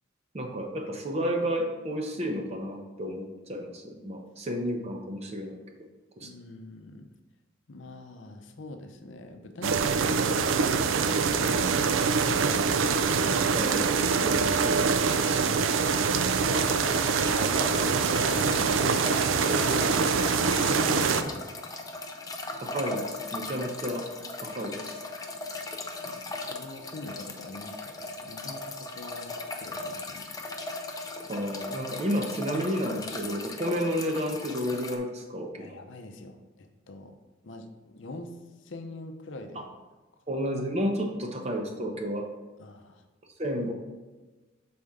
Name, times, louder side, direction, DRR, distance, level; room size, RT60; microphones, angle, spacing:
voice 1, 0.3-5.6 6.2-6.3 13.5-13.9 14.2-15.6 22.6-24.1 24.4-25.0 31.3-35.8 39.5-39.6 40.3-42.3 43.4-43.7, equal, 30° right, 3 dB, 0.7 m, -31 dB
voice 2, 6.2-7.1 7.7-12.9 15.2-15.6 17.9-19.7 20.4-21.7 25.3-25.5 26.0-30.3 35.6-37.1 37.4-38.4 38.6-39.7 42.6-43.0, left 2 dB, 65° left, 6 dB, 0.6 m, -44 dB
sound 1, 9.6-21.2, right 5 dB, 70° right, 0.4 m, -24 dB
sound 2, 16.5-35.0, left 2 dB, 20° left, 0.4 m, -38 dB
6.6 x 4.3 x 3.6 m, 1.2 s
head